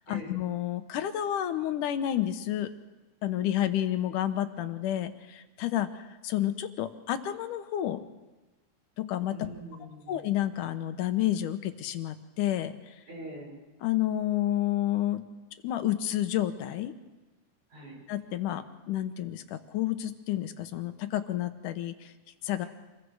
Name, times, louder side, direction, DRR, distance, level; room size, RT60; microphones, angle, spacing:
voice 1, 0.1-2.7 3.2-8.0 9.0-9.4 10.1-13.0 13.8-15.2 15.6-16.9 18.1-22.1 22.4-22.7, left 12 dB, 85° left, 9 dB, 2.5 m, -30 dB
voice 2, 9.3-10.2 13.1-13.6 17.7-18.0 22.6-22.7, right 1 dB, 70° right, -2 dB, 8.0 m, -43 dB
27.0 x 21.5 x 4.8 m, 1.2 s
omnidirectional pair, 3.6 m